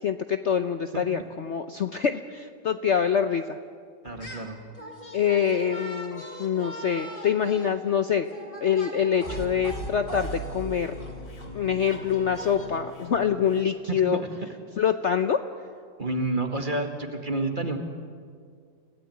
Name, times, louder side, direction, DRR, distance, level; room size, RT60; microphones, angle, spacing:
voice 1, 0.0-3.6 5.1-8.3 8.6-10.9 11.5-14.2 14.8-15.4, left 8 dB, 55° left, 8 dB, 0.9 m, -25 dB
sound 1, 4.0-4.5 4.8-12.8, right 1 dB, 30° left, 3.7 m, -39 dB
voice 2, 4.0-4.6 13.9-14.3 16.0-17.8, right 2 dB, 30° right, 5 dB, 2.0 m, -29 dB
sound 2, 9.3-13.7, left 6 dB, 80° left, 3.6 m, -44 dB
29.5 x 17.5 x 9.3 m, 2.1 s
omnidirectional pair, 1.8 m